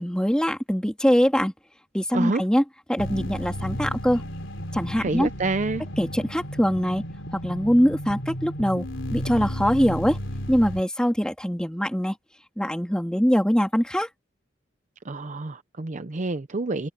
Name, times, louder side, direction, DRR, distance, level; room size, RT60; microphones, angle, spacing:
voice 1, 0.0-1.5 1.9-2.6 2.9-4.2 4.7-5.3 6.0-7.0 7.4-8.8 9.1-10.2 10.5-12.1 12.6-14.1, equal, 5° left, 3.2 m, -22 dB
sound 1, 3.0-10.8, equal, 75° left, 3.9 m, -33 dB
voice 2, 5.0-5.8 15.0-16.9, right 3 dB, 40° right, 0.7 m, -28 dB
head